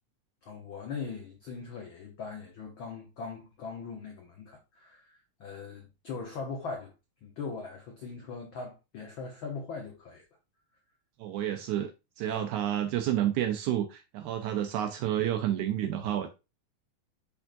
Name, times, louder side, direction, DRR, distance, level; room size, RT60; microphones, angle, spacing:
voice 1, 0.4-6.9 7.2-10.2 12.2-12.5, left 4 dB, 85° left, 1.1 m, -40 dB
voice 2, 11.2-16.3, right 11 dB, 80° right, 1.9 m, -30 dB
10.5 x 3.6 x 2.5 m
omnidirectional pair, 3.6 m